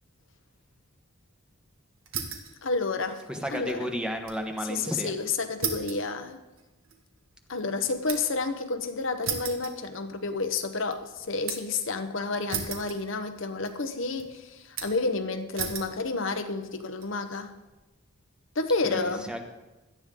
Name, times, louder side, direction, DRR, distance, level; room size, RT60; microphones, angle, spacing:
sound 1, 2.1-2.6 2.9-4.5 4.8-4.9 5.6-8.5 9.2-10.4 10.7-11.8 12.5-13.4 13.6-14.2 14.8-15.1 15.6-16.0 16.6-17.1, right 6 dB, 70° right, 1.9 m, -36 dB
voice 1, 2.6-3.2 3.5-3.9 4.7-6.4 7.5-17.5 18.5-19.3, left 3 dB, 65° left, 7 dB, 1.0 m, -30 dB
voice 2, 3.3-5.1 18.9-19.4, equal, 5° right, 4 dB, 1.2 m, -33 dB
17.5 x 12.5 x 3.8 m, 1.1 s
head